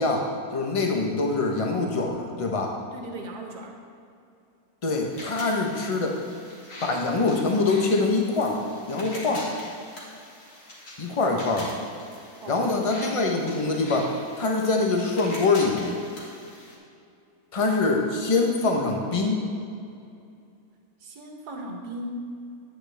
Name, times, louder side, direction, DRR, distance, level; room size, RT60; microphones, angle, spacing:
voice 1, 0.0-2.7 4.8-6.2 6.8-8.6 8.9-9.5 11.0-11.7 12.5-16.0 17.5-19.4, left 3 dB, 25° left, 1 dB, 0.9 m, -24 dB
voice 2, 2.9-3.8 12.4-12.6 21.0-22.3, right 1 dB, 85° right, 2 dB, 1.6 m, -37 dB
sound 1, 5.1-16.8, left 1 dB, 55° left, 2.1 m, -43 dB
10.5 x 8.7 x 3.4 m, 2.5 s
omnidirectional pair, 1.6 m